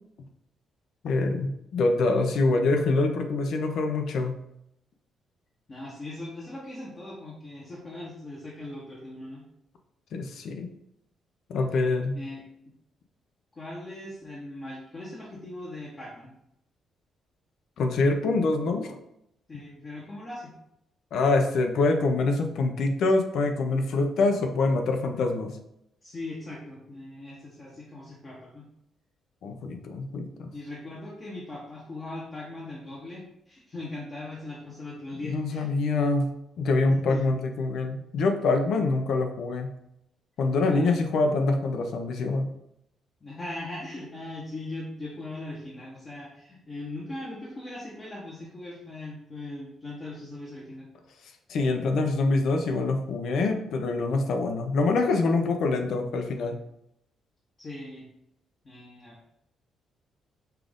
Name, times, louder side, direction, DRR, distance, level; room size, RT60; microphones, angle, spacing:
voice 1, 1.0-4.4 10.1-10.7 11.5-12.2 17.8-19.0 21.1-25.5 29.4-30.5 35.2-39.7 40.4-42.5 51.5-56.6, left 3 dB, 65° left, 5 dB, 0.6 m, -25 dB
voice 2, 5.7-9.4 11.5-12.4 13.6-16.3 19.5-20.5 26.0-28.7 30.5-35.7 36.9-37.2 40.6-41.0 43.2-50.9 57.6-58.1 58.6-59.2, left 2 dB, 30° left, -5 dB, 0.9 m, -39 dB
5.7 x 2.5 x 3.5 m, 0.79 s
cardioid pair, 145°, 0 cm